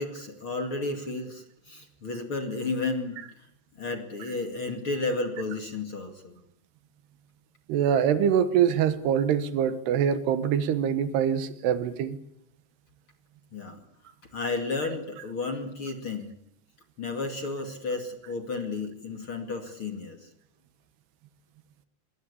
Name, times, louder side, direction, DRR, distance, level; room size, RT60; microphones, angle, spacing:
voice 1, 0.0-3.5 3.8-6.4 13.5-13.8 14.3-16.3 17.0-20.3, left 3 dB, 35° left, 5 dB, 2.5 m, -32 dB
voice 2, 7.7-12.2, right 8 dB, 75° right, 13 dB, 3.3 m, -24 dB
25.0 x 22.5 x 8.4 m, 0.77 s
omnidirectional pair, 4.9 m